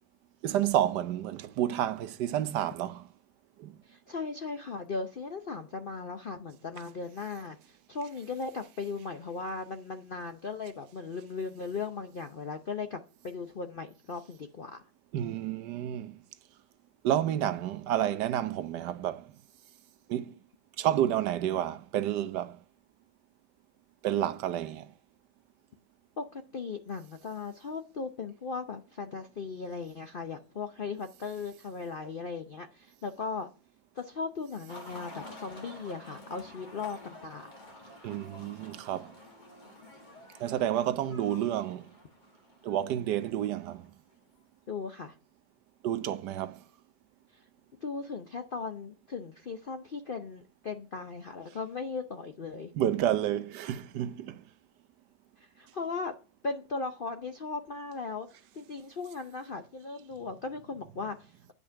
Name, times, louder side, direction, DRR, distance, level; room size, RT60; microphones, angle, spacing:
voice 1, 0.4-3.1 3.6-3.8 15.1-16.2 17.0-19.3 20.1-20.3 20.8-22.6 24.0-24.9 38.0-39.1 40.4-41.9 42.6-43.9 45.8-46.6 52.8-54.4, right 11 dB, 70° right, 1.3 m, -30 dB
voice 2, 3.9-14.8 26.2-33.5 33.9-37.5 44.7-45.1 47.3-47.4 47.8-52.7 55.4-56.1 56.4-61.5, left 4 dB, 65° left, 0.5 m, -38 dB
sound 1, 34.7-44.4, left 1 dB, 25° left, 1.6 m, -50 dB
9.6 x 5.4 x 5.6 m
omnidirectional pair, 2.0 m